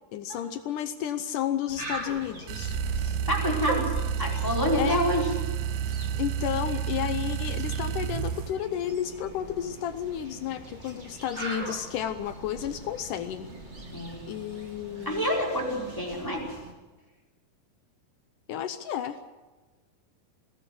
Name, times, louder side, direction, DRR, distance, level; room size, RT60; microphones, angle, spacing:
voice 1, 0.1-2.8 4.8-5.0 6.2-13.5 14.3-15.3 18.5-19.2, left 10 dB, 75° left, 10 dB, 2.1 m, -32 dB
sound 1, 1.7-16.7, right 2 dB, 20° right, 2.5 m, -40 dB
sound 2, 2.5-8.5, right 9 dB, 75° right, 2.1 m, -30 dB
voice 2, 3.3-3.9 4.2-5.3 13.9-14.3 15.0-16.5, equal, 5° left, -2 dB, 4.3 m, -27 dB
21.0 x 17.0 x 7.8 m, 1.2 s
omnidirectional pair, 4.2 m